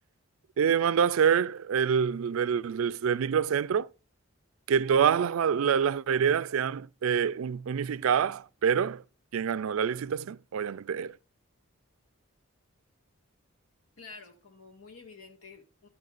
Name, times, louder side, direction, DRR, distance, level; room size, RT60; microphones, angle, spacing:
voice 1, 0.6-3.9 4.7-9.0 9.3-11.1, right 7 dB, 80° right, 0.4 m, -26 dB
voice 2, 14.0-15.9, left 4 dB, 80° left, 1.9 m, -49 dB
12.0 x 9.4 x 2.5 m
head